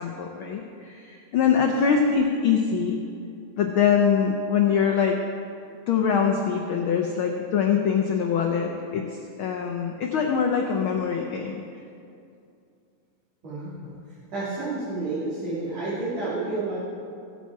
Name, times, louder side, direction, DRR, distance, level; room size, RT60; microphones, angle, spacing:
voice 1, 0.0-3.0 3.6-5.2 5.9-9.0 9.4-11.6, left 7 dB, 85° left, 2 dB, 1.1 m, -23 dB
voice 2, 13.4-13.9 14.3-16.8, right 3 dB, 65° right, -10 dB, 3.7 m, -30 dB
16.0 x 8.6 x 4.7 m, 2.5 s
omnidirectional pair, 3.3 m